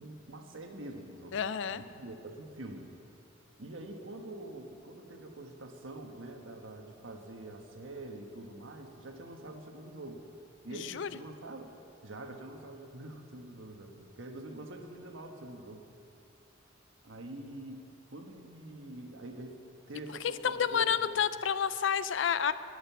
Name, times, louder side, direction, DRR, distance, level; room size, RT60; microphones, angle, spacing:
voice 1, 0.0-1.4 1.7-2.9 3.6-10.2 10.6-11.7 12.0-15.8 17.0-19.6 19.9-21.1, right 1 dB, 85° right, 3 dB, 1.3 m, -45 dB
voice 2, 1.3-1.8 10.7-11.1 20.4-22.5, left 7 dB, 70° left, 14 dB, 0.4 m, -29 dB
12.5 x 6.7 x 9.2 m, 2.5 s
head